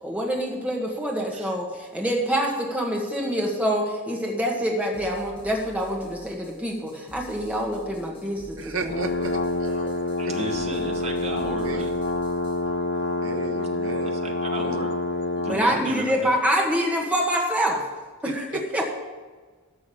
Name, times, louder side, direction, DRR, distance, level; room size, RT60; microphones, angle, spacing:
voice 1, 0.0-8.9 15.5-17.8 18.2-18.8, equal, 5° right, -1 dB, 1.5 m, -26 dB
sound 1, 4.9-12.6, right 1 dB, 25° left, 1.7 m, -47 dB
voice 2, 8.6-10.7 11.6-11.9 13.2-14.8 18.2-18.6, right 4 dB, 70° right, 5 dB, 0.9 m, -35 dB
sound 2, 8.9-15.7, left 2 dB, 50° left, 0.8 m, -27 dB
voice 3, 10.2-11.9 14.2-14.9 15.4-16.3, right 2 dB, 30° right, 2 dB, 1.4 m, -33 dB
13.5 x 5.3 x 6.9 m, 1.4 s
head